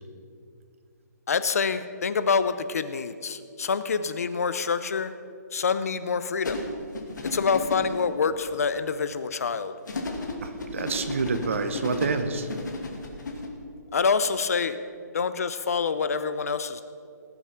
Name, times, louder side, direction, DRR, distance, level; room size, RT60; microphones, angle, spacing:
voice 1, 1.3-5.1 5.5-6.6 7.2-9.7 13.9-14.8 15.1-16.8, left 5 dB, 55° left, 12 dB, 0.7 m, -26 dB
sound 1, 6.4-8.0 9.9-13.5, left 2 dB, 80° left, 2.6 m, -33 dB
voice 2, 10.4-12.5, right 4 dB, 45° right, 9 dB, 1.0 m, -28 dB
19.5 x 8.0 x 5.8 m, 2.4 s
hypercardioid pair, 175°, 10 cm